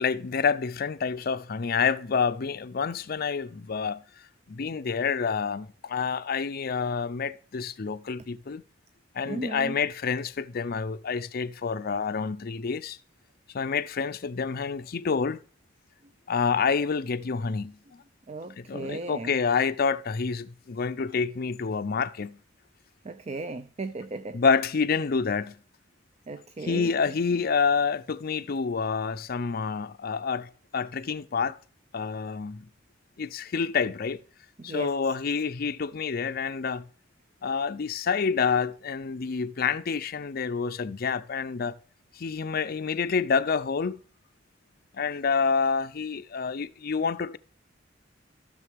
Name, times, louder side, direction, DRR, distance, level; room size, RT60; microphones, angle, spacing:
voice 1, 0.0-4.0 4.5-8.6 9.1-13.0 13.5-15.4 16.3-18.0 18.6-22.4 24.3-25.6 26.6-31.6 31.9-32.7 33.2-34.2 34.6-36.8 37.4-41.8 42.2-44.0 44.9-47.4, left 5 dB, 50° left, 0.5 m, -28 dB
voice 2, 9.3-9.8 18.3-19.4 23.0-24.4 26.3-27.2 34.6-34.9, right 3 dB, 35° right, 0.5 m, -36 dB
14.0 x 6.7 x 3.4 m
head